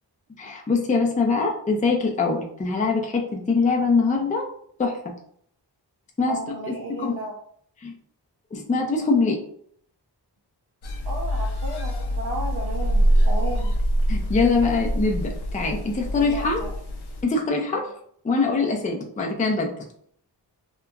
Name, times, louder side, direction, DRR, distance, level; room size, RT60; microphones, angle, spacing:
voice 1, 0.4-4.5 4.8-5.0 6.2-6.4 6.9-7.1 7.8-7.9 8.5-9.4 14.1-16.6 17.2-17.9 18.2-19.7, left 4 dB, 20° left, 1 dB, 0.4 m, -23 dB
voice 2, 6.3-7.3 11.0-13.7 16.1-16.7, right 2 dB, 65° right, -2 dB, 0.6 m, -34 dB
sound 1, 10.8-17.2, equal, 70° left, 0.6 m, -24 dB
2.9 x 2.4 x 2.2 m, 0.62 s
wide cardioid pair, 105°, 42 cm